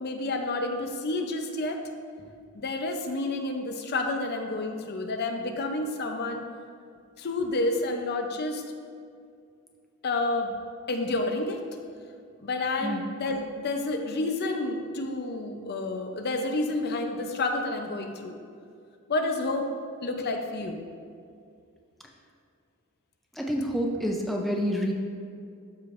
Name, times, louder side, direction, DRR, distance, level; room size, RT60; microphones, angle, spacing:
voice 1, 0.0-1.8 2.5-6.4 7.2-8.6 10.0-10.5 10.9-11.6 12.4-18.4 19.1-19.7 20.0-20.8, left 2 dB, 50° left, 4 dB, 0.6 m, -29 dB
voice 2, 23.4-24.9, equal, ahead, -1 dB, 0.5 m, -28 dB
12.5 x 5.0 x 2.5 m, 2.3 s
head